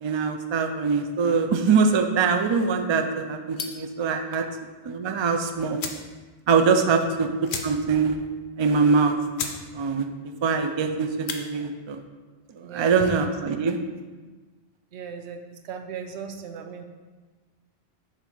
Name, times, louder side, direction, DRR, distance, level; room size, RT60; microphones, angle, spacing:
voice 1, 0.0-4.4 4.8-5.8 6.5-7.3 7.6-8.2 8.6-9.2 9.7-10.1 10.4-12.0 12.6-13.8, right 5 dB, 50° right, 6 dB, 0.3 m, -23 dB
sound 1, 3.5-3.9 5.3-5.4 5.7-6.1 6.5-6.6 6.8-7.0 7.4-8.0 8.4-8.5 9.0-9.1 9.3-9.6 10.0-10.3 11.1-11.4, left 6 dB, 80° left, 0.9 m, -34 dB
voice 2, 12.6-13.3 14.9-16.8, right 6 dB, 85° right, 6 dB, 0.9 m, -37 dB
7.3 x 2.7 x 5.8 m, 1.3 s
omnidirectional pair, 1.1 m